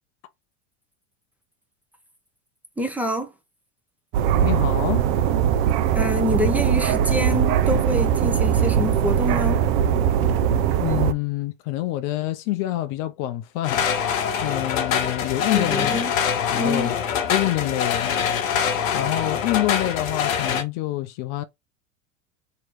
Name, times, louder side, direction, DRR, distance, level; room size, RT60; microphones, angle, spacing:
voice 1, 2.8-3.3 5.9-9.6 15.5-16.1 16.5-17.0, left 1 dB, 5° right, 0.7 m, -26 dB
sound 1, 4.1-11.1, right 9 dB, 55° right, 0.7 m, -20 dB
voice 2, 4.4-5.0 10.8-13.9 14.4-15.9 16.3-17.0 17.3-18.1 18.9-21.4, left 15 dB, 50° left, 0.6 m, -26 dB
sound 2, 13.6-20.6, left 7 dB, 80° left, 0.9 m, -24 dB
3.0 x 2.9 x 4.5 m
hypercardioid pair, 95°, 39 cm